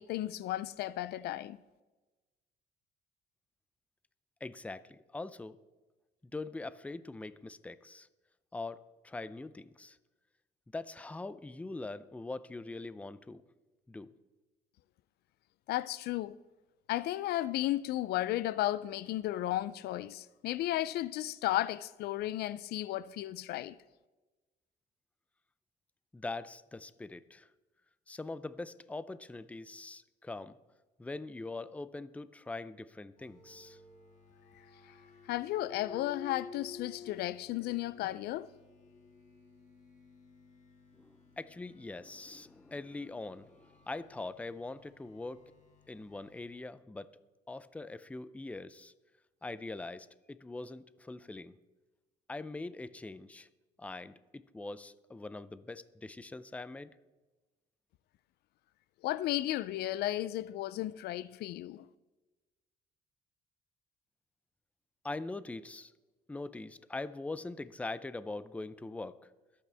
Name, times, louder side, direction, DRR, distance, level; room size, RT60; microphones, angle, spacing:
voice 1, 0.0-1.6 15.7-16.4 16.9-23.8 35.3-38.5 59.0-61.9, left 14 dB, 70° left, 0.4 m, -34 dB
voice 2, 4.4-5.6 6.3-8.1 8.5-10.0 10.7-13.4 13.9-14.1 26.1-27.5 28.1-30.6 31.0-33.8 41.0-45.4 45.9-47.1 47.5-48.9 49.4-51.6 52.3-53.5 53.8-57.0 65.0-65.9 66.3-69.2, left 2 dB, 10° left, 0.5 m, -42 dB
sound 1, 33.2-46.5, left 5 dB, 45° left, 3.0 m, -54 dB
23.0 x 8.5 x 3.4 m
cardioid pair, 110°, 17 cm